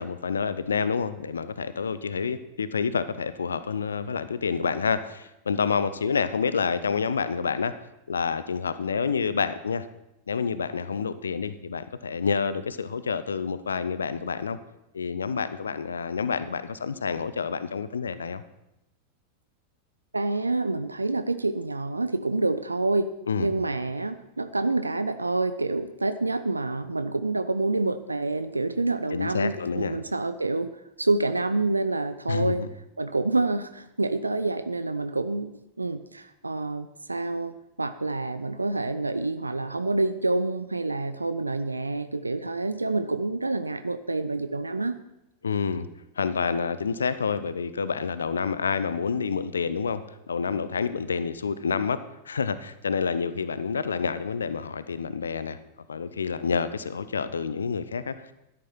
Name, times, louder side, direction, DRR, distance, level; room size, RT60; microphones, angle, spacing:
voice 1, 0.0-7.7 8.1-9.9 10.3-14.6 14.9-18.4 23.3-23.5 29.1-30.0 32.3-32.7 45.4-45.9 46.2-50.0 50.3-52.0 52.2-55.6 55.9-58.3, left 5 dB, 70° left, 14 dB, 0.5 m, -28 dB
voice 2, 20.1-23.1 23.4-32.6 33.0-35.5 35.8-45.0, right 2 dB, 80° right, 12 dB, 0.4 m, -27 dB
12.5 x 10.5 x 4.3 m, 0.87 s
figure-of-eight pair, 90°, 0 cm